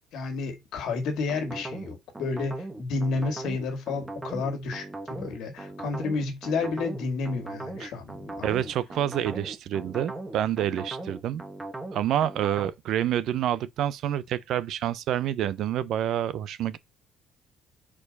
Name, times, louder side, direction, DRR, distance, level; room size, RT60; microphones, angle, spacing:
voice 1, 0.1-8.7, left 4 dB, 65° left, 2.1 m, -31 dB
acid riff synth, 1.3-12.7, right 2 dB, 10° right, 1.1 m, -38 dB
voice 2, 8.4-11.4 11.9-16.8, right 11 dB, 55° right, 0.5 m, -28 dB
4.8 x 4.4 x 5.3 m
cardioid pair, 175°, 0 cm